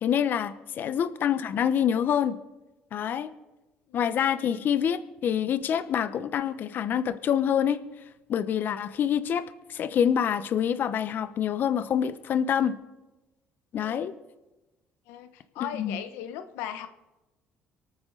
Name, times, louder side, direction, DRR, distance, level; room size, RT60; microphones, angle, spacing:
voice 1, 0.0-2.4 2.9-3.3 3.9-7.8 8.3-9.4 9.7-12.7 13.7-14.1 15.7-16.0, left 8 dB, 55° left, 12 dB, 1.0 m, -26 dB
voice 2, 4.3-4.7 13.8-14.1 15.1-15.3 15.5-16.9, left 10 dB, 90° left, 9 dB, 1.0 m, -38 dB
24.5 x 9.5 x 4.0 m, 1.0 s
cardioid pair, 95°, 4 cm